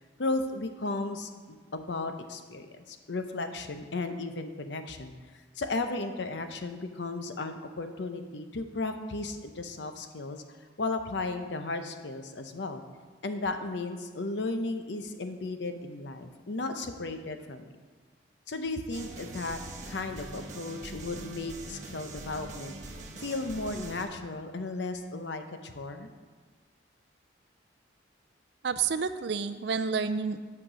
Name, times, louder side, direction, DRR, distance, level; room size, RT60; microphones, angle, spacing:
voice 1, 0.2-5.1 5.6-10.4 10.8-12.8 13.2-17.7 18.5-19.6 19.9-22.7 23.2-26.1, left 3 dB, 65° left, 7 dB, 0.7 m, -35 dB
sound 1, 18.9-24.0, right 2 dB, 40° right, 1.1 m, -43 dB
voice 2, 28.6-30.4, right 5 dB, 55° right, 10 dB, 0.4 m, -29 dB
10.5 x 5.9 x 5.0 m, 1.4 s
head